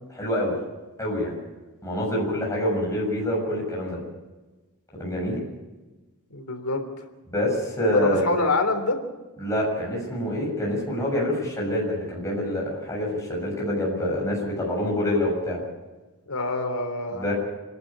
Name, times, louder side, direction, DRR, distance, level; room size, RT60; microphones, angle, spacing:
voice 1, 0.1-0.5 1.0-1.4 1.8-4.0 5.0-5.4 7.3-8.2 9.4-15.6 17.1-17.3, left 1 dB, 15° left, -4 dB, 7.1 m, -26 dB
voice 2, 6.3-6.8 7.9-9.0 16.3-17.2, left 2 dB, 80° left, 5 dB, 3.6 m, -25 dB
27.5 x 12.0 x 8.9 m, 1.2 s
head